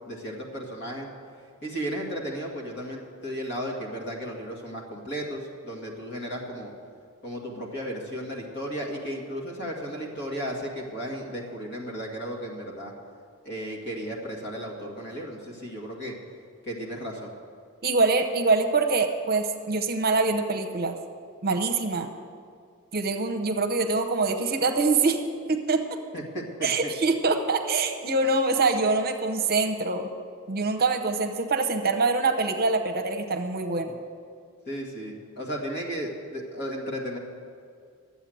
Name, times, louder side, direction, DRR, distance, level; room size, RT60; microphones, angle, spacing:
voice 1, 0.1-1.1 1.6-6.7 7.2-12.9 13.4-16.1 16.6-17.3 26.1-26.9 34.7-37.2, equal, 50° left, -1 dB, 2.1 m, -34 dB
voice 2, 17.8-21.0 21.4-22.1 22.9-25.2 25.5-25.8 26.6-30.1 30.5-33.9, right 3 dB, 45° right, 6 dB, 0.9 m, -24 dB
12.0 x 8.2 x 7.8 m, 2.3 s
head